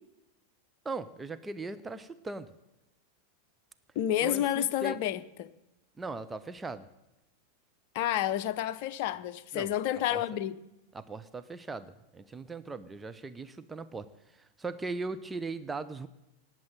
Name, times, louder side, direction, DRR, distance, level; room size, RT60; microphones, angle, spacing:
voice 1, 0.8-2.5 4.2-5.0 6.0-6.9 9.5-9.7 10.1-10.2 10.9-16.1, right 3 dB, 10° right, 0.7 m, -39 dB
voice 2, 3.9-5.5 7.9-10.6, left 12 dB, 45° left, 0.7 m, -30 dB
18.0 x 7.5 x 9.2 m
figure-of-eight pair, 90°, 0 cm